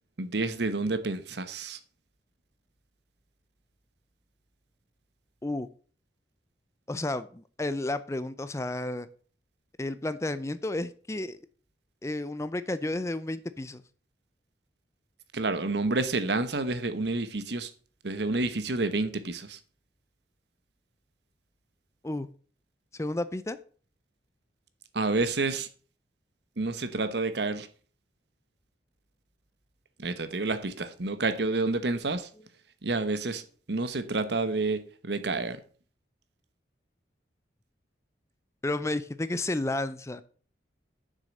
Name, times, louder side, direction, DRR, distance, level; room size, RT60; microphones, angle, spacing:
voice 1, 0.2-1.8 15.3-17.7 18.0-19.6 24.9-25.7 26.6-27.7 30.0-32.3 32.8-33.4 33.7-35.6, right 3 dB, 70° right, 1.0 m, -29 dB
voice 2, 6.9-9.1 9.8-11.4 12.0-13.8 22.0-22.3 22.9-23.6 32.4-32.5 38.6-40.2, left 2 dB, 15° left, 0.5 m, -32 dB
7.4 x 6.5 x 6.4 m
head